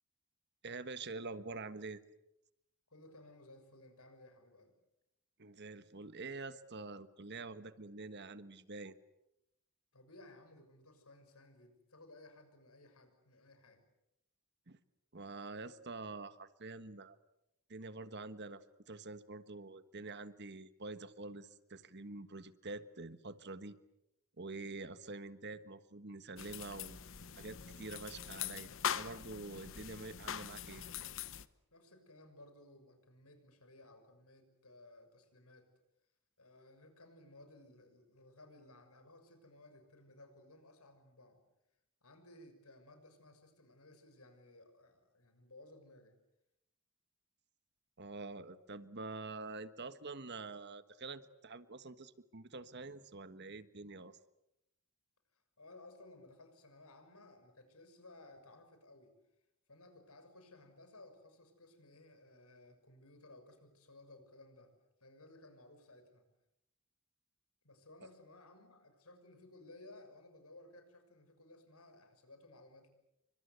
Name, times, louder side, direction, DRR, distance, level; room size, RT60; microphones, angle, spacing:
voice 1, 0.6-2.0 5.4-9.0 14.7-14.8 15.1-17.2 17.7-23.8 24.4-27.0 27.4-28.7 29.0-30.8 48.0-54.2, right 3 dB, 50° right, 13 dB, 1.5 m, -46 dB
voice 2, 2.9-4.8 9.9-13.8 31.7-35.7 36.4-41.4 42.0-46.2 55.3-59.1 59.7-64.7 65.0-66.3 67.6-72.9, left 2 dB, 85° left, 7 dB, 6.4 m, -59 dB
sound 1, 26.4-31.4, left 8 dB, 60° left, 1.1 m, -42 dB
29.5 x 25.0 x 8.2 m, 0.85 s
head